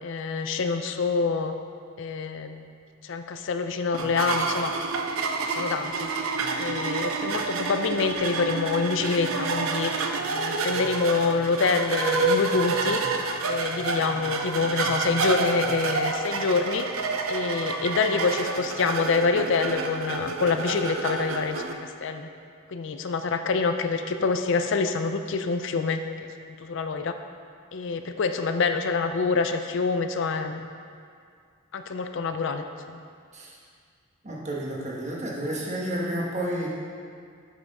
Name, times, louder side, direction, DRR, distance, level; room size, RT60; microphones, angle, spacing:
voice 1, 0.0-1.5 2.0-2.7 3.0-4.7 5.5-6.1 6.6-9.9 10.3-13.0 13.4-16.9 17.3-22.3 22.7-26.0 26.6-27.1 27.7-30.7 31.7-33.0, left 4 dB, 60° left, 7 dB, 0.4 m, -26 dB
sound 1, 3.9-21.7, right 3 dB, 75° right, 0.6 m, -29 dB
voice 2, 34.2-36.7, right 1 dB, 35° right, -4 dB, 1.4 m, -30 dB
8.0 x 5.7 x 5.3 m, 2.2 s
head